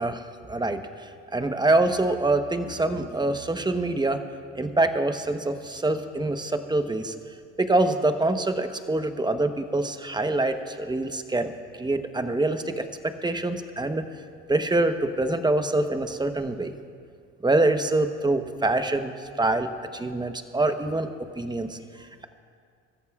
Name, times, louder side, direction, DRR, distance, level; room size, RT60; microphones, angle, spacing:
voice 1, 0.0-4.2 4.5-7.1 7.6-11.5 11.8-14.0 14.5-16.7 17.4-21.1 21.4-22.3, right 2 dB, 15° right, 8 dB, 1.0 m, -25 dB
25.0 x 14.0 x 2.4 m, 2.2 s
supercardioid pair, 75°, 31 cm